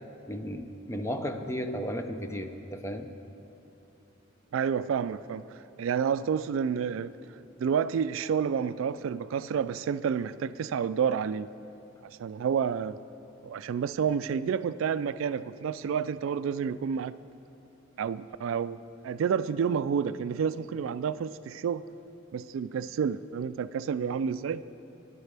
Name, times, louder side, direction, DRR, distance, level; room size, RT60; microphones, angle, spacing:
voice 1, 0.3-3.1, equal, 15° left, 6 dB, 0.6 m, -34 dB
voice 2, 4.5-7.1 7.6-11.5 12.2-12.9 13.4-17.2 18.0-21.9 22.3-24.6, right 7 dB, 70° right, 15 dB, 0.3 m, -29 dB
19.5 x 11.0 x 3.4 m, 2.9 s
head